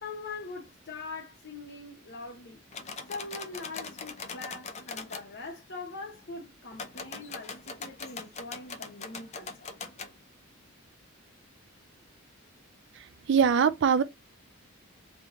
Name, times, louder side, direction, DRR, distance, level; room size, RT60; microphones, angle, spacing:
voice 1, 0.0-2.6 3.1-9.7, left 3 dB, 50° left, 0.8 m, -42 dB
sound 1, 2.7-5.2 6.7-10.1, left 4 dB, 30° left, 0.5 m, -41 dB
voice 2, 13.3-14.0, right 6 dB, 55° right, 0.4 m, -22 dB
3.4 x 3.0 x 3.7 m
head